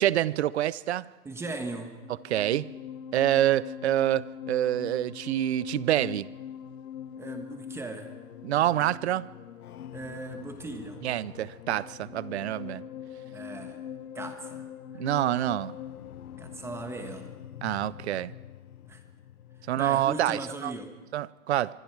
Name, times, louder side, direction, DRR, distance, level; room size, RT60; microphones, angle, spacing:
voice 1, 0.0-1.1 2.2-2.7 3.1-6.3 8.4-9.3 11.0-12.8 15.0-15.7 17.6-18.3 19.7-20.7 21.1-21.7, right 12 dB, 50° right, 0.6 m, -26 dB
voice 2, 1.2-2.0 7.2-8.1 9.9-11.0 13.3-13.8 14.1-14.6 14.9-15.0 16.4-17.3 18.9-19.0 19.8-20.9, right 2 dB, 5° right, 1.3 m, -38 dB
sound 1, 1.8-20.2, left 9 dB, 80° left, 0.9 m, -43 dB
25.5 x 23.5 x 4.7 m
hypercardioid pair, 150°, 44 cm